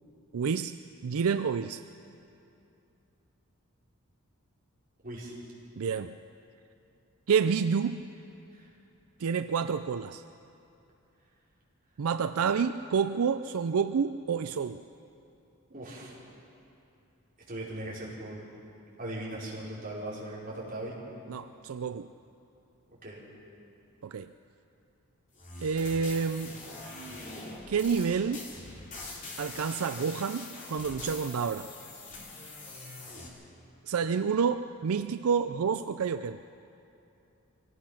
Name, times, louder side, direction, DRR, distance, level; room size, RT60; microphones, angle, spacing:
voice 1, 0.3-1.8 5.8-6.2 7.3-8.0 9.2-10.2 12.0-14.8 21.3-22.1 24.0-24.3 25.6-26.6 27.7-28.5 29.4-31.7 33.9-36.4, right 6 dB, 80° right, 10 dB, 0.4 m, -29 dB
voice 2, 5.0-5.3 8.5-8.7 15.7-16.2 17.5-18.5 19.0-21.0 22.9-23.2, right 1 dB, 40° right, -6 dB, 4.9 m, -39 dB
sound 1, 25.4-33.3, left 2 dB, 35° left, 3.1 m, -43 dB
24.5 x 18.0 x 5.9 m, 2.7 s
head